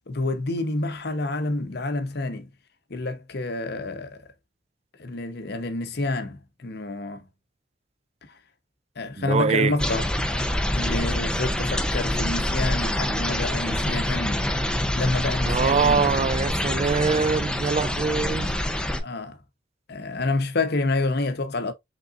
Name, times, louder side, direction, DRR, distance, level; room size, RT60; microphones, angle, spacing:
voice 1, 0.1-2.5 2.9-4.3 5.0-7.3 8.2-8.4 9.0-10.0 10.7-14.5 14.9-16.1 18.3-18.5 19.0-19.4 19.9-21.7, left 2 dB, 60° left, 0.8 m, -28 dB
voice 2, 9.2-9.7 15.5-18.5, right 5 dB, 35° right, 0.3 m, -23 dB
sound 1, 9.8-19.0, left 1 dB, 5° left, 0.6 m, -26 dB
5.3 x 3.7 x 2.4 m
head